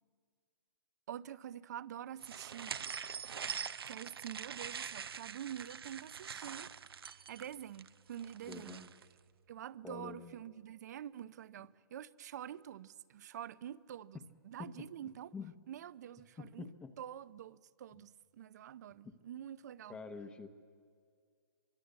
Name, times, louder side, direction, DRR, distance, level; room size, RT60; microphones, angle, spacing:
voice 1, 1.1-2.8 3.8-6.7 7.0-8.8 9.5-14.2 14.4-15.3 15.7-16.7 17.0-20.0, right 10 dB, 45° right, 0.6 m, -47 dB
sound 1, 2.2-9.1, right 7 dB, 90° right, 0.9 m, -44 dB
voice 2, 8.4-8.9 9.8-10.4 14.6-14.9 15.3-15.5 16.4-16.9 18.0-18.1 19.0-19.2 19.9-20.5, left 5 dB, 10° left, 0.9 m, -47 dB
24.5 x 23.0 x 8.1 m
hypercardioid pair, 160°, 12 cm